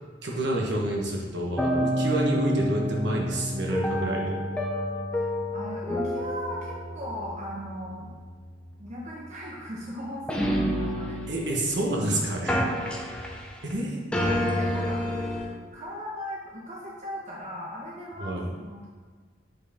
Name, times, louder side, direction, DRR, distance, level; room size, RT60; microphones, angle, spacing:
voice 1, 0.2-4.4 11.3-12.6 13.6-14.0 18.2-18.4, right 1 dB, 65° right, -2 dB, 1.3 m, -28 dB
sound 1, 1.6-12.1 12.5-13.8 14.1-15.5, equal, 5° left, 0.7 m, -30 dB
voice 2, 5.5-8.1 8.8-11.2 12.4-12.8 14.2-15.0 15.7-18.9, equal, 40° right, -4 dB, 0.9 m, -38 dB
8.3 x 4.7 x 3.5 m, 1.5 s
head